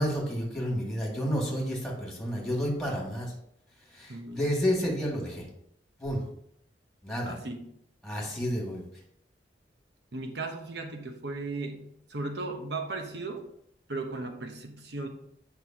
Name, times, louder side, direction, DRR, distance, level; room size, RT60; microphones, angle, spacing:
voice 1, 0.0-3.3 4.0-5.4 6.0-6.2 7.0-7.4 8.0-8.8, equal, 5° left, -3 dB, 2.1 m, -30 dB
voice 2, 4.1-4.4 7.2-7.6 10.1-13.4 13.9-15.1, right 3 dB, 70° right, 4 dB, 1.0 m, -36 dB
8.3 x 5.5 x 2.9 m, 0.70 s
head